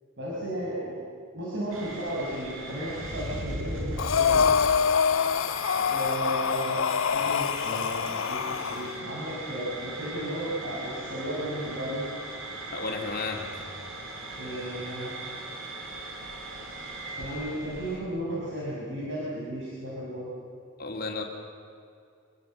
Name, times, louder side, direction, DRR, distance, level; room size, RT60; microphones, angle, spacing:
voice 1, 0.2-1.0 1.3-4.4 5.7-6.8 7.1-12.0 14.3-15.1 17.2-20.3, right 1 dB, 60° right, -6 dB, 6.0 m, -34 dB
sound 1, 1.7-18.0, right 1 dB, 80° right, 5.0 m, -39 dB
Breathing, 4.0-8.9, left 6 dB, 70° left, 0.5 m, -25 dB
voice 2, 12.7-13.6 20.8-21.2, left 3 dB, 45° left, 1 dB, 3.5 m, -33 dB
26.0 x 22.0 x 7.7 m, 2.4 s
head